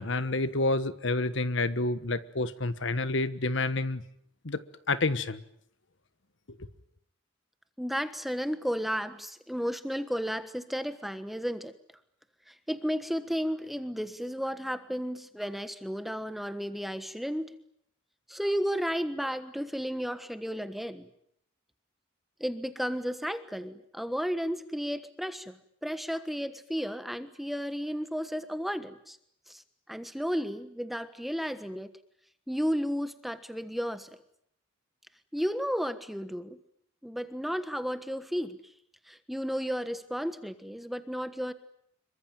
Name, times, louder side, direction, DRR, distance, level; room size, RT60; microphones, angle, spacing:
voice 1, 0.0-4.0 4.4-4.6 4.9-5.4, left 2 dB, 60° left, 14 dB, 1.3 m, -29 dB
voice 2, 7.8-11.7 12.5-17.5 18.3-21.1 22.4-29.2 29.5-29.6 29.9-31.9 32.5-34.1 35.3-36.6 37.0-38.6 39.1-41.5, equal, ahead, 11 dB, 1.4 m, -33 dB
26.5 x 23.5 x 9.1 m, 0.71 s
head